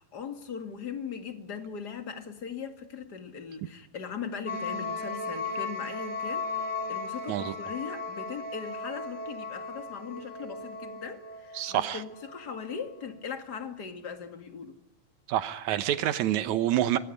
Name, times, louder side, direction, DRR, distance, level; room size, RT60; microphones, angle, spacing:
voice 1, 0.0-14.7, left 6 dB, 35° left, 2.2 m, -39 dB
sound 1, 4.5-12.6, left 3 dB, 5° right, 2.8 m, -36 dB
voice 2, 11.5-12.0 15.3-17.0, right 12 dB, 65° right, 2.3 m, -27 dB
25.5 x 21.0 x 9.9 m
omnidirectional pair, 3.9 m